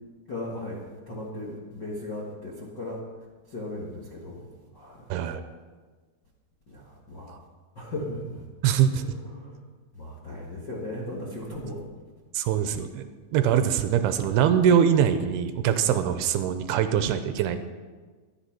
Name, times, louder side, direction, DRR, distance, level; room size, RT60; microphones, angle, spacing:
voice 1, 0.3-0.8 1.1-3.0 3.5-4.5 4.7-5.0 6.7-6.8 7.1-7.3 7.8-8.4 9.3-9.6 9.9-11.8, left 1 dB, 50° left, -6 dB, 1.3 m, -36 dB
voice 2, 5.1-5.4 7.3-7.4 8.6-9.0 12.3-13.0 13.3-17.6, right 8 dB, 80° right, 9 dB, 2.6 m, -23 dB
13.0 x 10.5 x 5.9 m, 1.4 s
omnidirectional pair, 4.7 m